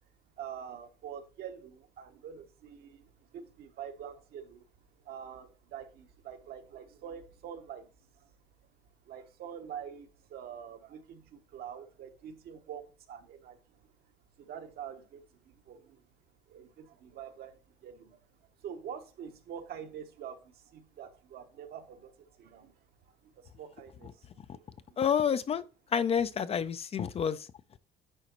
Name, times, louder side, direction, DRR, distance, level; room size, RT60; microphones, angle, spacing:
voice 1, 0.4-4.7 5.0-7.9 9.1-13.9 14.4-16.0 16.5-18.2 18.6-22.7 23.2-24.3 24.5-24.6, right 8 dB, 65° right, 1.1 m, -46 dB
voice 2, 25.0-25.6 25.9-27.5, left 7 dB, 35° left, 0.5 m, -28 dB
10.0 x 3.9 x 3.0 m
cardioid pair, 110°, 17 cm